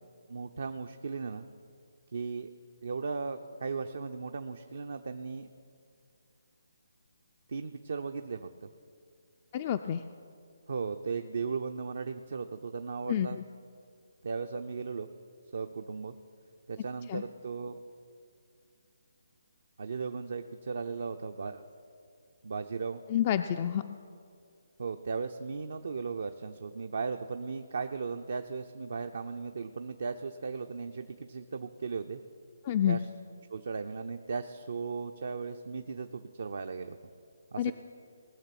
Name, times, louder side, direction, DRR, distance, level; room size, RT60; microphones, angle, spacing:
voice 1, 0.3-1.5 2.1-2.5 2.8-5.5 7.5-8.5 10.7-13.4 14.2-15.1 15.5-16.2 16.7-17.8 19.8-21.7 22.4-23.0 24.8-32.2 32.9-33.0 33.5-37.0 37.5-37.7, right 4 dB, 65° right, 7 dB, 0.6 m, -36 dB
voice 2, 9.5-10.0 13.1-13.4 17.1-17.2 23.1-24.0 32.6-33.0 37.6-37.7, left 10 dB, 35° left, 8 dB, 0.3 m, -29 dB
20.0 x 6.7 x 6.0 m, 2.3 s
figure-of-eight pair, 150°, 0 cm